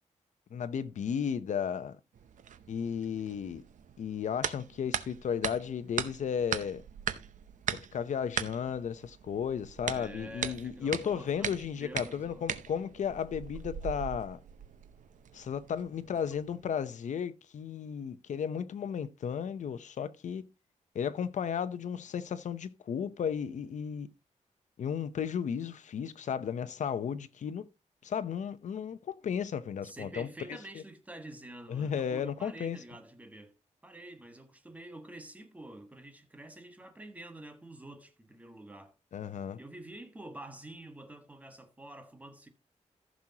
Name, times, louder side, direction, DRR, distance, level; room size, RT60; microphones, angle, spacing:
voice 1, 0.5-2.0 2.7-3.6 4.0-6.8 7.9-14.4 15.3-20.4 20.9-24.1 24.8-27.6 28.0-30.6 31.7-32.8 39.1-39.6, left 7 dB, 75° left, 0.8 m, -34 dB
sound 1, 2.1-16.8, right 8 dB, 85° right, 0.7 m, -40 dB
voice 2, 9.9-12.4 29.8-33.5 33.8-38.9 39.6-42.5, right 1 dB, 10° right, 1.4 m, -48 dB
14.5 x 6.2 x 2.9 m
wide cardioid pair, 150°, 13 cm